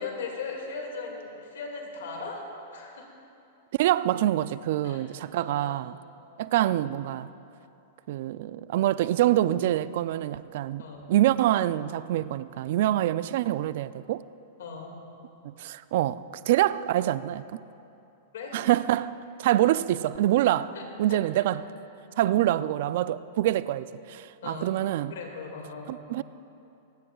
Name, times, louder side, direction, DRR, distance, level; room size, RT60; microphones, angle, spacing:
voice 1, 0.0-2.4 2.7-3.1 4.8-5.1 5.3-5.8 10.8-11.1 14.6-15.0 18.3-18.6 20.7-20.8 21.1-21.2 24.4-24.7 25.1-25.9, left 4 dB, 75° left, 1 dB, 2.1 m, -38 dB
voice 2, 3.8-6.0 6.4-7.3 8.1-14.2 15.4-17.4 18.5-19.1 19.4-20.7 21.0-21.7 22.2-25.1 25.9-26.2, right 13 dB, 65° right, 17 dB, 0.3 m, -25 dB
26.5 x 9.8 x 2.4 m, 2.8 s
hypercardioid pair, 120°, 0 cm